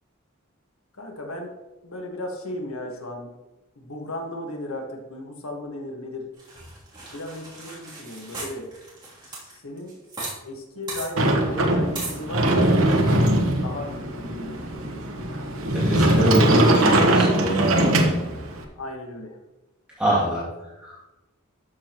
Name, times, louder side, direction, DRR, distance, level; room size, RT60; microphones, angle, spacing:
voice 1, 1.0-1.5 1.8-3.3 3.8-6.3 7.1-8.7 9.2-10.0 10.4-12.8 13.6-15.1 18.8-19.4, left 1 dB, 85° left, 2 dB, 1.5 m, -36 dB
sound 1, 6.4-10.3 10.6-10.7 10.9-11.1 11.9-12.2, right 3 dB, 20° right, 3.0 m, -36 dB
Sliding door, 11.2-18.6, right 1 dB, 75° right, 1.1 m, -21 dB
voice 2, 15.7-18.1 20.0-20.4 20.8-21.0, right 1 dB, 5° right, -9 dB, 1.9 m, -24 dB
12.5 x 6.4 x 3.0 m, 1.0 s
head